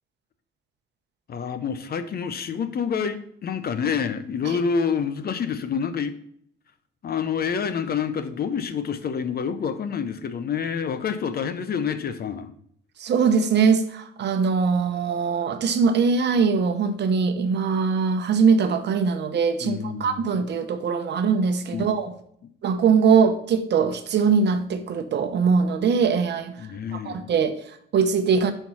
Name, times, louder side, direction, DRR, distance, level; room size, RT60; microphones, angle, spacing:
voice 1, 1.3-6.2 7.0-12.5 19.6-20.4 21.7-21.8 26.6-27.3, left 6 dB, 50° left, 11 dB, 0.7 m, -28 dB
voice 2, 13.0-22.1 22.6-28.5, right 5 dB, 60° right, 8 dB, 0.8 m, -22 dB
5.9 x 4.5 x 5.4 m, 0.66 s
cardioid pair, 90°, 20 cm